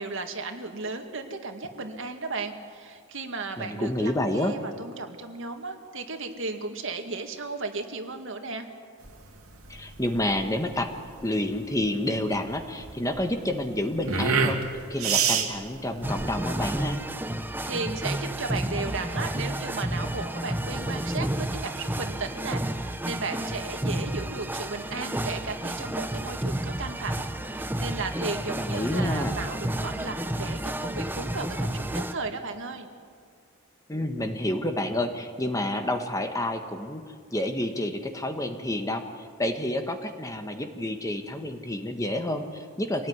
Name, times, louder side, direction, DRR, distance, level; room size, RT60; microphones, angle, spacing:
voice 1, 0.0-8.7 17.6-32.9, right 3 dB, 60° right, 5 dB, 2.2 m, -35 dB
voice 2, 3.6-4.5 9.7-14.6 14.9-17.0 28.6-29.3 33.9-37.1 37.3-39.0 39.4-43.1, left 1 dB, 15° left, 6 dB, 1.4 m, -29 dB
sound 1, 9.0-17.0, right 5 dB, 85° right, 2.6 m, -29 dB
sound 2, 16.0-32.1, right 1 dB, 10° right, 0.8 m, -31 dB
26.0 x 18.5 x 9.7 m, 2.1 s
head